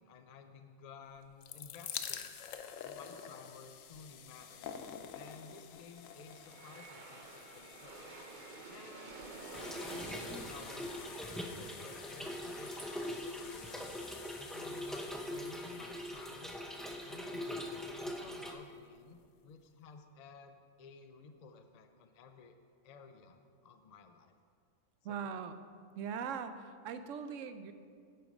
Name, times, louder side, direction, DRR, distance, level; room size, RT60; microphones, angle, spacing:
voice 1, 0.0-2.3 2.8-4.7 5.1-8.1 8.7-13.9 14.4-16.6 17.0-22.6 22.8-24.4 25.1-25.3, left 5 dB, 60° left, 7 dB, 0.4 m, -55 dB
sound 1, 1.2-18.2 19.0-19.1 19.2-19.3, left 8 dB, 85° left, 1.0 m, -49 dB
Aircraft, 5.5-16.6, right 3 dB, 45° right, 0.8 m, -53 dB
Trickle dribble / Fill (with liquid), 9.5-18.5, equal, ahead, 0.5 m, -42 dB
voice 2, 25.0-25.6 26.0-27.7, right 7 dB, 75° right, 10 dB, 0.9 m, -40 dB
8.9 x 8.0 x 5.3 m, 2.1 s
omnidirectional pair, 1.3 m